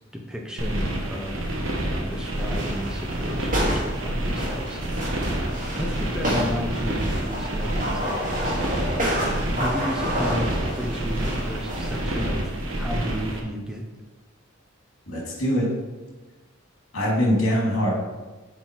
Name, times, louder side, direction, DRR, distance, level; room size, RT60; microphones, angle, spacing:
voice 1, 0.1-1.5 1.9-8.6 9.1-12.5 12.8-13.8, equal, 5° right, 1 dB, 0.6 m, -33 dB
sound 1, 0.6-13.4, right 1 dB, 70° right, 1.2 m, -28 dB
sound 2, 2.4-12.3, equal, 40° right, 2.1 m, -30 dB
voice 2, 15.1-15.7 16.9-17.9, equal, 80° left, -3 dB, 2.4 m, -23 dB
7.7 x 4.2 x 4.5 m, 1.2 s
head